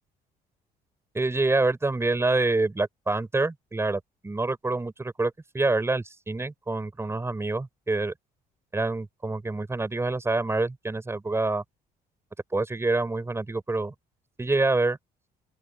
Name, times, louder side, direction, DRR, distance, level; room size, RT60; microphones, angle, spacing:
voice 1, 1.1-8.1 8.7-11.6 12.5-13.9 14.4-15.0, right 2 dB, 15° right, 6.7 m, -26 dB
open air
cardioid pair, 110°, 17 cm